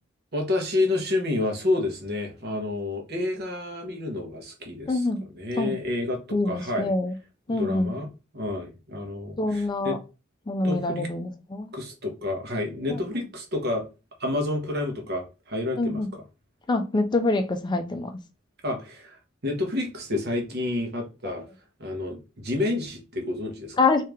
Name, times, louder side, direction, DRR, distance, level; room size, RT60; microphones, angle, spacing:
voice 1, 0.3-5.1 5.3-6.9 7.5-10.0 10.6-11.1 11.7-13.8 14.2-16.2 18.6-21.4 21.8-23.8, left 2 dB, 55° right, 1.1 m, -29 dB
voice 2, 4.9-5.2 5.6-5.7 6.3-7.1 7.5-7.9 9.4-10.0 10.5-11.7 12.9-13.0 15.8-16.1 16.7-18.1 23.8-24.1, left 2 dB, 25° left, 0.4 m, -25 dB
3.1 x 2.8 x 3.5 m
head